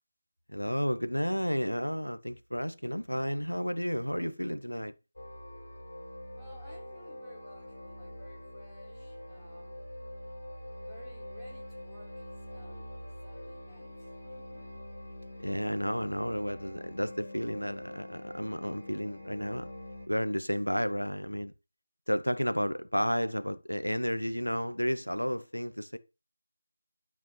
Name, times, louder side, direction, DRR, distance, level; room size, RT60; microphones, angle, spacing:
voice 1, 0.5-4.9 15.4-19.7 20.1-21.5 22.1-26.0, equal, 90° left, 1.1 m, -32 dB
sound 1, 5.2-20.1, left 1 dB, 55° left, 4.2 m, -45 dB
voice 2, 6.3-9.9 10.8-14.7 20.7-21.2, left 1 dB, ahead, 3.3 m, -56 dB
12.5 x 4.9 x 5.5 m
figure-of-eight pair, 165°, 0 cm